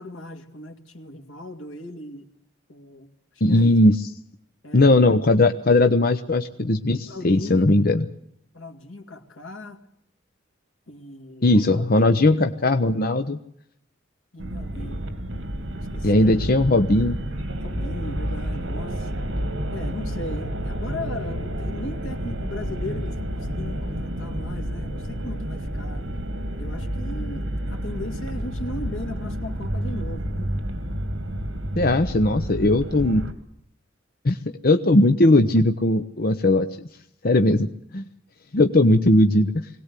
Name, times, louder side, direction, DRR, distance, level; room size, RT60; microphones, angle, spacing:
voice 1, 0.0-2.3 2.7-3.1 3.5-3.8 4.6-5.1 7.1-7.7 8.5-9.8 10.9-11.8 12.1-12.4 14.3-15.0 15.7-16.4 17.6-19.1 19.7-26.1 26.6-30.5, left 1 dB, 85° left, 4 dB, 2.4 m, -38 dB
voice 2, 3.4-4.1 4.7-8.0 11.4-13.4 16.0-17.2 31.8-33.2 34.2-34.4 34.6-36.7 37.2-37.7 37.9-38.0 38.5-39.7, left 2 dB, 50° left, 8 dB, 0.8 m, -18 dB
sound 1, 14.4-33.3, equal, 75° right, 2.6 m, -30 dB
21.5 x 18.0 x 8.3 m, 0.71 s
head